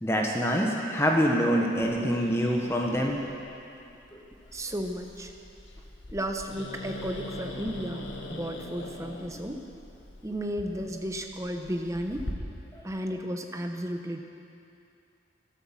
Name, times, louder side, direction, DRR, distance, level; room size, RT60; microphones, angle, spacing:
voice 1, 0.0-3.3 4.1-4.2 12.7-12.8, equal, 15° left, 0 dB, 1.3 m, -25 dB
Growling, 1.8-12.3, left 1 dB, 80° left, 1.6 m, -43 dB
voice 2, 4.5-5.3 6.1-9.6 10.2-12.3 12.8-14.2, equal, 15° right, 4 dB, 0.9 m, -33 dB
13.0 x 13.0 x 7.4 m, 2.7 s
head